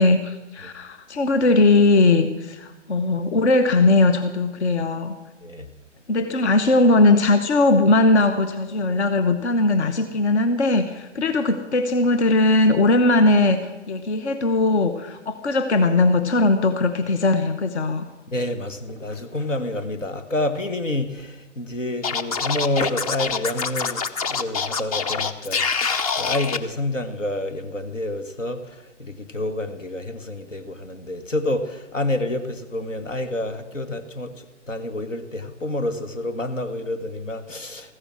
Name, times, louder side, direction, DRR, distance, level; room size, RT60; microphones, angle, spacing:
voice 1, 0.0-5.1 6.1-18.0, left 2 dB, 60° left, 10 dB, 1.1 m, -19 dB
voice 2, 18.3-37.9, left 1 dB, 85° left, 8 dB, 1.5 m, -28 dB
Scratching (performance technique), 22.0-26.6, left 5 dB, 30° left, 0.6 m, -25 dB
14.5 x 10.0 x 6.2 m, 1.1 s
figure-of-eight pair, 130°, 37 cm